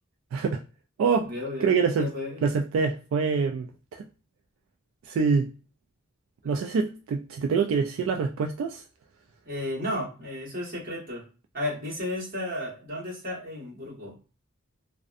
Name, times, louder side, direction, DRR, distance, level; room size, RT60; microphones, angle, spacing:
voice 1, 0.3-0.6 1.0-1.3 1.6-2.1 2.4-4.1 5.0-5.5 6.4-8.8, right 5 dB, 80° right, 0.3 m, -25 dB
voice 2, 1.2-2.4 9.4-11.2 11.5-14.2, left 1 dB, 45° right, 1.3 m, -33 dB
2.5 x 2.1 x 2.4 m
head